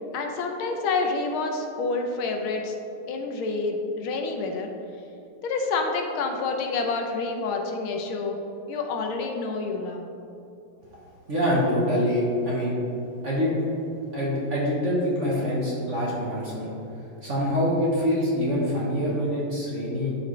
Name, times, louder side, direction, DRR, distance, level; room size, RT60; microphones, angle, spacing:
voice 1, 0.1-2.8 3.1-4.7 5.4-8.4 8.7-10.1, left 3 dB, 75° left, 2 dB, 1.5 m, -28 dB
voice 2, 11.3-12.8 13.2-13.5 14.1-16.7 17.2-20.2, equal, 45° right, -6 dB, 1.1 m, -25 dB
12.0 x 4.3 x 3.1 m, 2.8 s
omnidirectional pair, 2.4 m